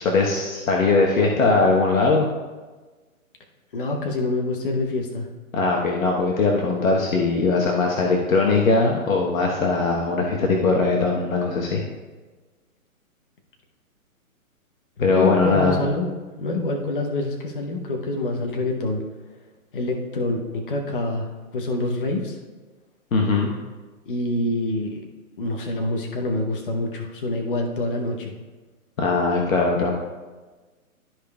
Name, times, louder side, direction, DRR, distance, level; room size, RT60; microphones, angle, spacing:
voice 1, 0.0-2.3 5.5-11.8 15.0-15.7 23.1-23.5 29.0-29.9, left 3 dB, 65° left, -1 dB, 1.2 m, -20 dB
voice 2, 3.7-5.3 15.0-19.0 19.7-22.4 24.1-25.0 25.4-28.3, left 2 dB, 40° left, 1 dB, 0.9 m, -26 dB
13.0 x 5.0 x 2.3 m, 1.3 s
hypercardioid pair, 175°, 43 cm